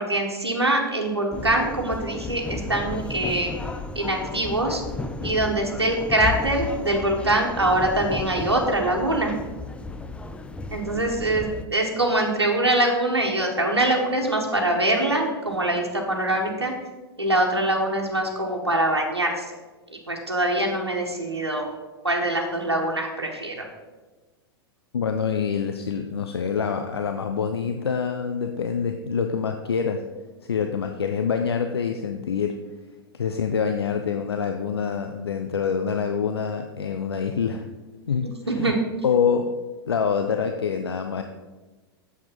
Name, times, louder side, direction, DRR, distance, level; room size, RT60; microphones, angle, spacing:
voice 1, 0.0-3.5 3.9-4.8 5.2-9.3 10.7-16.7 17.2-19.5 19.9-21.7 22.0-23.6 38.2-38.8, right 1 dB, 85° right, 0 dB, 1.4 m, -24 dB
sound 1, 1.3-11.6, left 3 dB, 10° left, 0.6 m, -34 dB
voice 2, 24.9-30.0 30.4-32.6 33.1-37.6 38.1-38.7 39.0-39.5 39.9-41.2, left 6 dB, 75° left, 6 dB, 0.7 m, -26 dB
8.6 x 7.2 x 5.3 m, 1.2 s
figure-of-eight pair, 95°, 13 cm